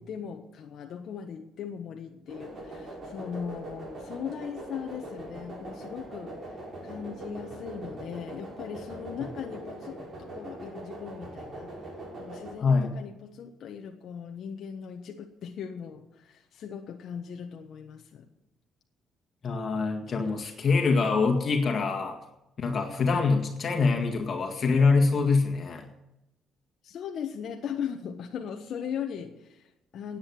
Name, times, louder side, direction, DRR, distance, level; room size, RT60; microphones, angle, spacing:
voice 1, 0.0-18.2 26.8-30.2, left 7 dB, 65° left, 3 dB, 1.2 m, -39 dB
sound 1, 2.3-12.5, right 1 dB, 50° right, 6.0 m, -41 dB
voice 2, 12.6-12.9 19.4-22.2 22.6-25.9, left 4 dB, 50° left, 3 dB, 1.9 m, -24 dB
10.0 x 8.9 x 9.5 m, 0.91 s
supercardioid pair, 75°, 0 cm